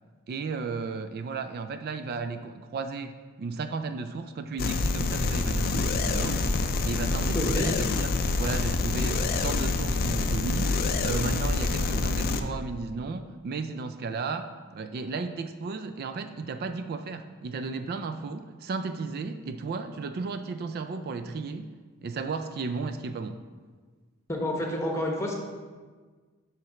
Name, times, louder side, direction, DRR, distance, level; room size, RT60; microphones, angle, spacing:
voice 1, 0.3-3.1 3.4-6.4 6.8-8.1 8.4-21.7 22.0-23.4, right 4 dB, 45° right, 9 dB, 0.3 m, -34 dB
sound 1, 4.6-12.4, left 3 dB, 45° left, 0.4 m, -26 dB
voice 2, 7.3-7.7 24.3-25.3, left 1 dB, 15° left, 0 dB, 1.0 m, -29 dB
7.8 x 3.1 x 5.7 m, 1.4 s
head